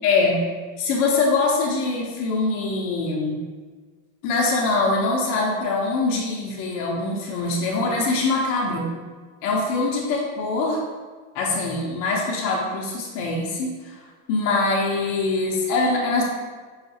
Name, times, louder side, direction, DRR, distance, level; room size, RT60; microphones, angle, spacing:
voice 1, 0.0-0.4 0.8-3.4 4.2-8.9 9.4-10.8 11.3-14.0 14.3-16.2, left 3 dB, 55° left, -2 dB, 0.8 m, -23 dB
5.7 x 2.4 x 2.7 m, 1.4 s
cardioid pair, 150°, 39 cm